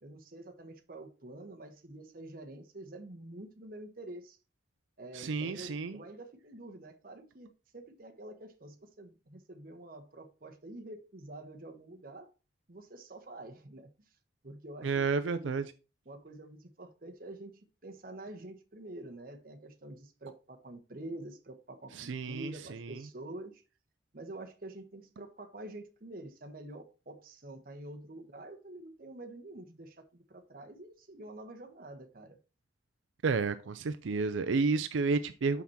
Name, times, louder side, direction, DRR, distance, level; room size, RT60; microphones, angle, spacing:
voice 1, 0.0-4.4 5.0-12.3 12.7-13.9 14.4-15.6 16.0-23.6 24.1-32.4, right 1 dB, 50° right, 1.1 m, -47 dB
voice 2, 5.1-6.0 14.8-15.6 22.0-23.0 33.2-35.6, right 4 dB, 90° right, 0.5 m, -31 dB
6.0 x 5.8 x 4.2 m
head